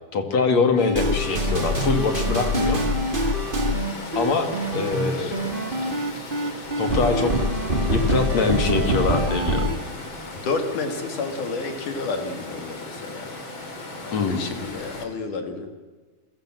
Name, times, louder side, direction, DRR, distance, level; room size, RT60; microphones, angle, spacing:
voice 1, 0.1-2.8 4.1-5.5 6.8-7.4 7.9-9.7 14.1-14.5, left 4 dB, 55° left, 6 dB, 3.5 m, -24 dB
sound 1, 0.8-9.8, equal, 20° right, 1.9 m, -24 dB
Water, 1.0-15.0, left 2 dB, 40° left, 4.2 m, -37 dB
voice 2, 4.7-5.3 10.4-13.3 14.0-15.8, left 4 dB, 75° left, 6 dB, 3.8 m, -31 dB
29.5 x 22.0 x 7.7 m, 1.4 s
omnidirectional pair, 3.7 m